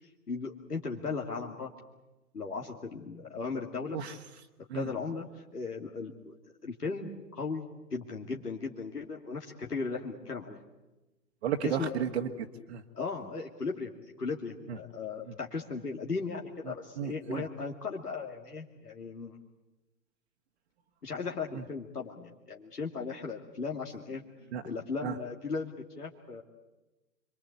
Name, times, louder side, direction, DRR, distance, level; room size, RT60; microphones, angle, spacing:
voice 1, 0.3-1.7 2.3-4.0 4.7-6.3 6.6-7.7 7.9-10.6 11.6-11.9 12.9-13.9 14.2-19.4 21.0-24.2 24.6-26.4, left 4 dB, 75° left, 0 dB, 2.6 m, -37 dB
voice 2, 11.4-12.8 14.7-14.8 15.2-15.3 16.7-17.4 21.5-21.6 24.5-24.6 25.0-25.2, right 8 dB, 40° right, 4 dB, 1.6 m, -34 dB
28.0 x 23.5 x 8.2 m, 1.0 s
figure-of-eight pair, 115°, 47 cm